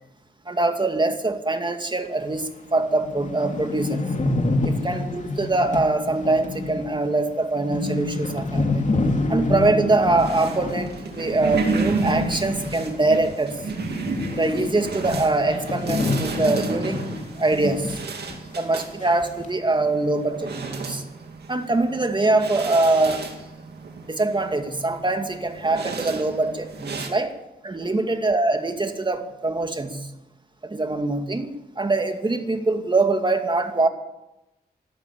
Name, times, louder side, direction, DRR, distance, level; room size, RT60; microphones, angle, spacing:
voice 1, 0.5-4.2 4.6-13.6 14.3-17.0 17.4-18.0 18.6-21.0 21.5-23.2 24.0-27.3 27.6-30.1 30.6-33.9, right 2 dB, 30° right, 6 dB, 2.2 m, -23 dB
sound 1, 2.3-2.4 2.8-2.9 3.0-13.3 13.5-18.0 18.3-18.4 19.0-19.5, left 2 dB, 45° left, 2.8 m, -28 dB
sound 2, 10.2-27.1, right 4 dB, 80° right, 2.5 m, -33 dB
13.0 x 12.0 x 8.8 m, 0.94 s
cardioid pair, 60°, 17 cm